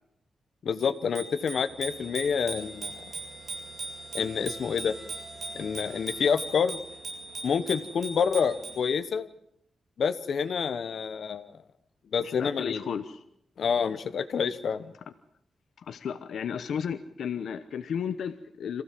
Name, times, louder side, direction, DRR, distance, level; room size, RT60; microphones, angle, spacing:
voice 1, 0.6-3.0 4.1-4.9 5.5-6.8 7.4-9.3 10.0-11.5 12.1-12.9 13.6-14.9, left 6 dB, 60° left, 10 dB, 1.2 m, -28 dB
Bicycle bell, 0.8-8.9, right 3 dB, 40° right, 7.7 m, -40 dB
sound 1, 1.7-8.8, right 4 dB, 65° right, 4.4 m, -53 dB
sound 2, 2.2-6.4, right 2 dB, 20° right, 2.9 m, -52 dB
voice 2, 12.2-13.2 15.9-18.8, left 7 dB, 80° left, 10 dB, 1.0 m, -33 dB
26.5 x 15.5 x 7.6 m, 0.73 s
wide cardioid pair, 160°, 0 cm